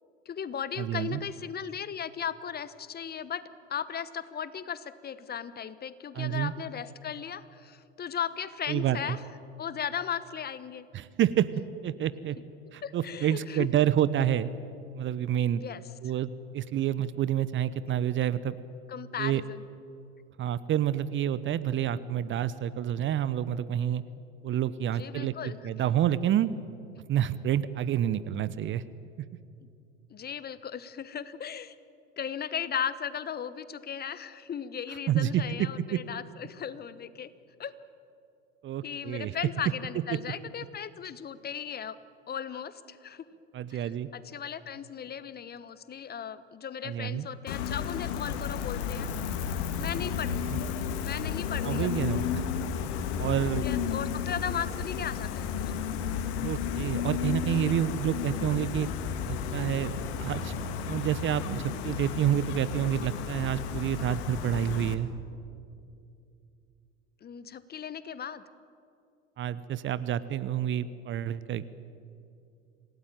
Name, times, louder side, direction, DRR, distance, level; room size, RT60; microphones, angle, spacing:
voice 1, 0.2-3.4 3.7-9.2 9.6-10.9 12.8-13.7 15.5-15.8 18.9-19.6 25.0-25.6 30.1-31.7 32.2-37.3 37.6-37.7 38.8-42.0 42.3-43.3 43.7-43.8 44.1-49.1 49.8-50.5 51.0-52.0 52.9-53.1 53.6-55.7 57.4-57.8 67.2-68.4, left 8 dB, 25° left, 15 dB, 1.1 m, -36 dB
voice 2, 0.8-1.2 6.1-6.5 8.7-9.2 10.9-11.5 11.8-12.4 12.7-14.5 15.0-15.6 16.0-18.6 19.2-19.4 20.4-24.0 24.4-26.5 27.1-28.8 35.1-35.4 35.9-36.0 38.6-39.4 40.1-40.2 43.5-44.1 46.8-47.3 50.5-50.6 51.6-52.4 53.2-53.6 56.4-58.9 59.3-59.9 60.2-60.5 60.8-65.1 69.4-71.7, right 11 dB, 35° right, 16 dB, 0.9 m, -28 dB
Gull seagull, 47.5-64.9, left 7 dB, 60° left, 2.1 m, -32 dB
27.0 x 18.0 x 9.2 m, 2.5 s
figure-of-eight pair, 80°, 36 cm